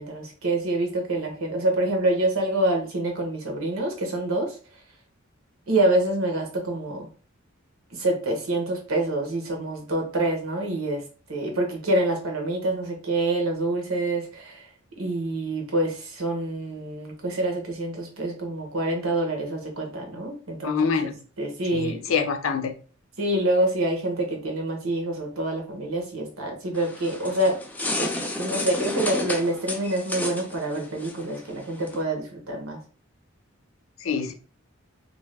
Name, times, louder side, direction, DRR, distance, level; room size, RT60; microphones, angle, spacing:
voice 1, 0.0-4.6 5.7-7.1 7.9-11.0 11.3-14.7 15.0-21.1 21.4-22.0 23.2-27.6 28.0-28.1 28.4-32.8, right 1 dB, 80° right, 1.0 m, -26 dB
voice 2, 20.6-21.1 21.7-22.7 34.0-34.3, left 5 dB, 70° left, 0.5 m, -25 dB
sound 1, 26.7-32.0, left 1 dB, 10° left, 0.4 m, -32 dB
2.6 x 2.3 x 3.3 m
head